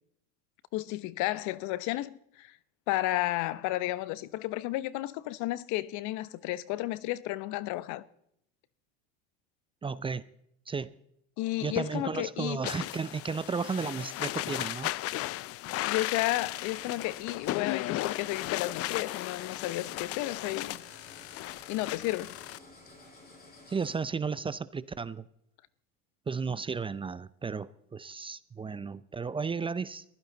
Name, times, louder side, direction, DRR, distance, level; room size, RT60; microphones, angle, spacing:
voice 1, 0.7-2.6 2.9-8.0 11.4-12.6 15.8-20.8 21.7-22.4, left 17 dB, 60° left, 1.0 m, -32 dB
voice 2, 9.8-10.2 10.7-10.9 11.6-14.9 23.7-25.2 26.3-30.0, right 5 dB, 15° right, 0.6 m, -34 dB
sound 1, 12.6-22.6, left 16 dB, 45° left, 0.6 m, -36 dB
sound 2, 16.1-23.9, left 2 dB, 25° left, 7.1 m, -53 dB
22.0 x 15.5 x 4.0 m
supercardioid pair, 115°, 32 cm